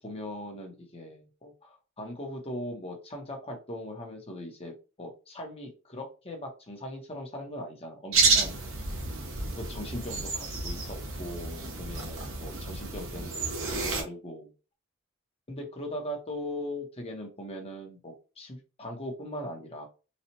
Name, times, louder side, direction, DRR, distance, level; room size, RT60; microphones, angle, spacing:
voice 1, 0.0-4.7 5.0-8.5 9.6-14.5 15.5-19.9, left 1 dB, 30° left, 1 dB, 1.0 m, -40 dB
sound 1, 8.1-14.0, right 4 dB, 65° right, 1.0 m, -30 dB
4.1 x 2.4 x 3.0 m, 0.32 s
head